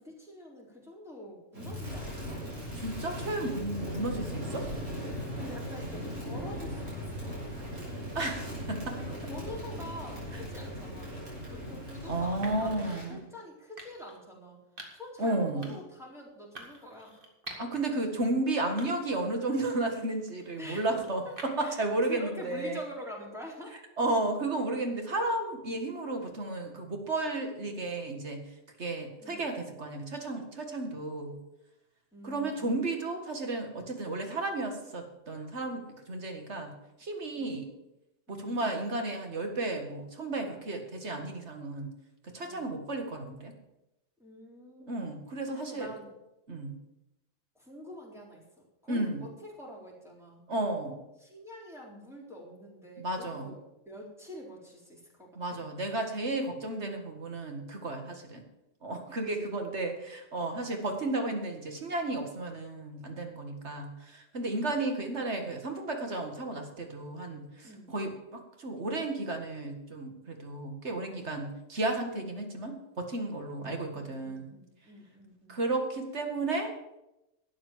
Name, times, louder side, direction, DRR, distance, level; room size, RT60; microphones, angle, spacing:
voice 1, 0.0-2.4 5.3-7.7 8.8-11.2 11.4-14.6 14.9-17.2 20.6-23.8 29.2-29.4 32.1-32.7 37.4-37.5 38.3-38.5 42.4-42.6 44.2-45.2 45.5-46.1 47.6-48.4 48.8-50.4 51.2-53.6 53.9-55.4 59.2-59.5 67.6-67.9 73.6-75.6, left 1 dB, ahead, -4 dB, 4.0 m, -46 dB
Crackle, 1.5-13.1, equal, 80° right, 6.1 m, -38 dB
voice 2, 2.8-4.7 8.1-9.0 12.1-13.2 15.2-15.8 17.6-22.8 24.0-28.4 28.8-31.4 32.2-36.7 37.0-37.7 38.3-41.9 42.3-43.5 44.9-45.9 46.5-46.7 48.9-49.2 50.5-51.0 53.0-53.5 55.4-58.4 58.8-74.5 75.5-76.7, right 2 dB, 60° right, 4 dB, 2.2 m, -33 dB
sound 1, 11.1-11.4 12.4-12.8 13.8-14.2 14.8-15.1 15.6-16.0 16.6-17.8 18.2-18.3 18.8-19.2 19.6-21.8, right 1 dB, 45° right, 2.3 m, -48 dB
12.0 x 8.7 x 7.4 m, 0.91 s
omnidirectional pair, 1.3 m